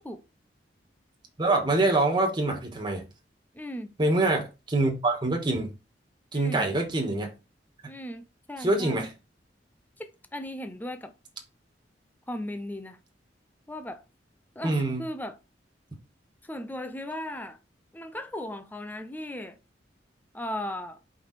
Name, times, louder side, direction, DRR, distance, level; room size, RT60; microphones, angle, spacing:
voice 1, 1.4-3.1 4.0-5.7 6.3-7.3 8.6-9.1 14.6-15.0, right 2 dB, 25° right, 1.8 m, -25 dB
voice 2, 3.5-3.9 6.3-6.7 7.8-9.0 10.0-11.1 12.3-13.0 13.7-14.0 14.5-15.4 16.4-17.6 17.9-19.6 20.3-21.0, left 1 dB, 10° left, 0.7 m, -37 dB
5.3 x 4.9 x 4.3 m
head